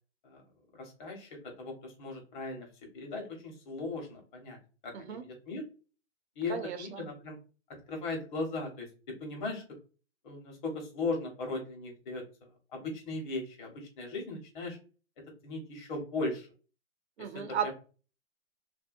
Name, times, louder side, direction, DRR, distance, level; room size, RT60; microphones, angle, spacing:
voice 1, 0.8-2.7 2.9-4.6 4.8-5.6 6.4-7.4 7.9-9.6 10.2-12.2 12.7-14.8 15.4-16.5 17.2-17.3 17.6-17.7, left 3 dB, 40° left, 1.2 m, -37 dB
voice 2, 6.5-7.0 17.2-17.7, right 8 dB, 60° right, 0.6 m, -35 dB
2.7 x 2.2 x 2.5 m
hypercardioid pair, 135°, 37 cm